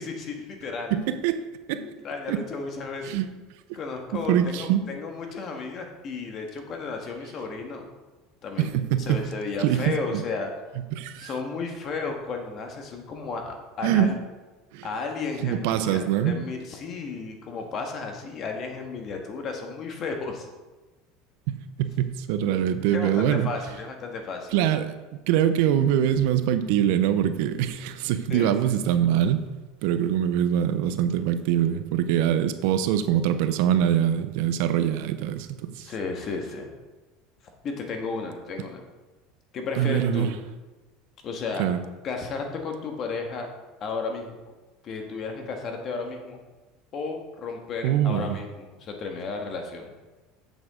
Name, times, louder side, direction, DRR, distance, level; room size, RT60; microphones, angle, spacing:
voice 1, 0.0-0.9 1.8-3.2 3.7-7.9 8.4-8.7 9.0-10.5 11.2-14.1 14.8-20.5 22.9-24.6 28.3-28.5 35.8-36.7 37.6-38.8 39.5-40.3 41.2-41.7 42.0-43.5 43.8-44.5 44.8-46.4 46.9-49.9, left 4 dB, 45° left, 3 dB, 1.6 m, -33 dB
voice 2, 0.9-1.4 1.7-2.0 2.3-2.4 3.0-3.3 4.1-4.8 8.6-9.2 9.6-10.2 10.9-11.3 13.8-14.1 14.7-14.9 15.4-16.4 21.5-23.5 24.5-24.9 25.3-29.4 29.8-35.9 39.8-40.3 41.6-41.8 47.8-48.4, right 10 dB, 75° right, 11 dB, 0.6 m, -24 dB
8.0 x 7.2 x 3.7 m, 1.2 s
supercardioid pair, 110°, 0 cm